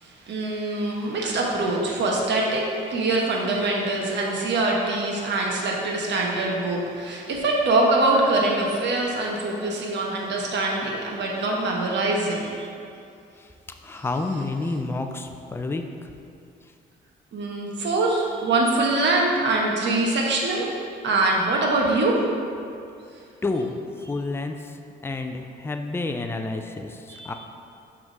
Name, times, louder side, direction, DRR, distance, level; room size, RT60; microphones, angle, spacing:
voice 1, 0.0-12.7 14.0-14.1 17.3-20.7 21.0-22.2 27.1-27.3, right 2 dB, 60° right, -2 dB, 1.2 m, -24 dB
voice 2, 13.8-15.8 23.4-23.8 24.1-24.6 25.0-27.3, left 3 dB, 10° left, 5 dB, 0.4 m, -29 dB
6.0 x 3.7 x 5.3 m, 2.5 s
cardioid pair, 90°, 20 cm